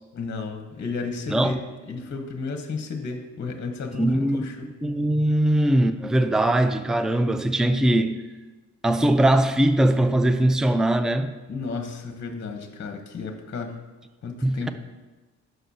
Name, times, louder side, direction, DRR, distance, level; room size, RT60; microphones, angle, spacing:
voice 1, 0.1-1.6 1.9-4.7 11.5-13.8 14.2-14.7, left 4 dB, 40° left, 0.9 m, -33 dB
voice 2, 1.3-1.6 4.0-4.4 4.8-8.2 8.8-11.4 14.4-14.7, right 1 dB, ahead, 0.4 m, -21 dB
11.0 x 6.4 x 2.8 m
cardioid pair, 90°, 30 cm